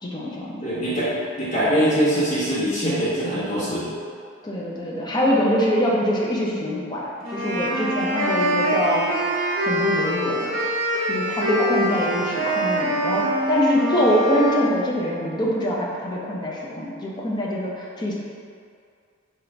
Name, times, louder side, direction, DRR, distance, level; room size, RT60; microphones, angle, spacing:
voice 1, 0.0-0.6 4.4-9.2 9.7-10.5 11.1-18.2, equal, 20° left, -4 dB, 0.5 m, -24 dB
voice 2, 0.6-3.9 6.0-6.1 6.5-6.6 12.1-12.2, equal, 35° left, -12 dB, 1.5 m, -23 dB
sound 1, 7.2-14.7, equal, 70° right, 0.7 m, -24 dB
3.8 x 2.9 x 3.3 m, 2.3 s
head